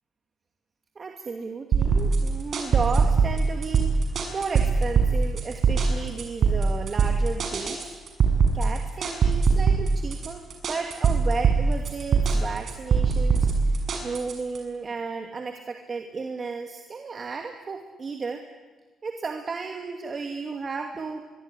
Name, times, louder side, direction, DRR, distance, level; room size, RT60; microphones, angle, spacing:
voice 1, 1.0-7.8 8.5-10.4 10.7-13.5 14.0-18.4 19.0-21.3, right 4 dB, 40° right, 4 dB, 2.5 m, -33 dB
sound 1, 1.7-14.6, right 5 dB, 55° right, 6.6 m, -22 dB
25.0 x 23.0 x 9.9 m, 1.3 s
cardioid pair, 90°, 0 cm